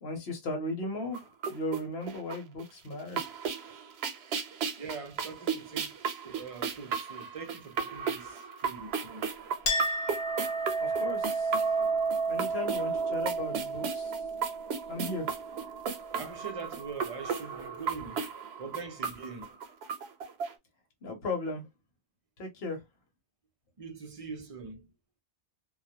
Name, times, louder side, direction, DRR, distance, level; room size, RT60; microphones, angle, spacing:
voice 1, 0.0-1.2 1.5-3.2 10.8-11.5 12.3-14.1 14.9-15.3 21.0-21.6 22.4-22.8, left 2 dB, 70° left, 1.1 m, -36 dB
sound 1, 1.1-2.6 2.9-20.5, right 6 dB, 85° right, 0.8 m, -36 dB
voice 2, 4.8-9.3 16.2-18.3 18.6-19.6 23.8-24.9, right 5 dB, 45° right, 0.5 m, -43 dB
Chink clink, 9.7-16.7, right 3 dB, 45° left, 0.7 m, -32 dB
2.3 x 2.0 x 2.7 m
omnidirectional pair, 1.1 m